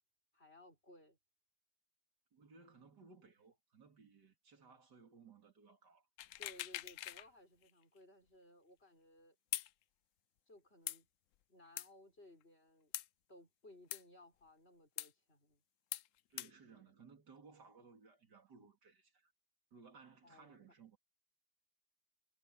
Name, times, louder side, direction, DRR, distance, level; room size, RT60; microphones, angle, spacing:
voice 1, 0.3-1.2 6.4-9.4 10.5-11.1 11.5-13.0 13.3-15.6 20.2-20.5, left 1 dB, 35° left, 6.3 m, -61 dB
voice 2, 2.3-6.1 16.3-19.3 19.7-21.0, right 5 dB, 85° right, 3.3 m, -61 dB
sound 1, 6.2-7.3 7.6-7.7 9.5-9.7 10.9-11.0 11.8-11.9 12.9-13.1 13.9-14.0 15.0-15.1 15.9-16.1 16.4-16.5, left 13 dB, 70° left, 0.8 m, -42 dB
omnidirectional pair, 1.8 m